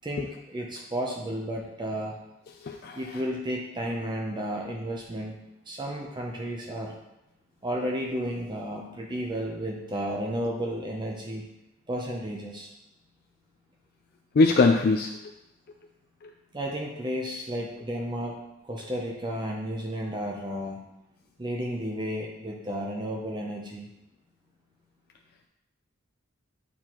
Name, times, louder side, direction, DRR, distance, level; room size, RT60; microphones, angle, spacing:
voice 1, 0.0-2.2 2.9-5.4 5.7-6.9 7.6-11.5 11.9-12.7 16.5-20.8 21.4-23.9, equal, 25° right, 0 dB, 0.6 m, -32 dB
voice 2, 2.6-3.0 14.3-15.1 16.2-16.3, left 3 dB, 50° left, 3 dB, 0.4 m, -21 dB
8.5 x 4.3 x 3.0 m, 0.91 s
head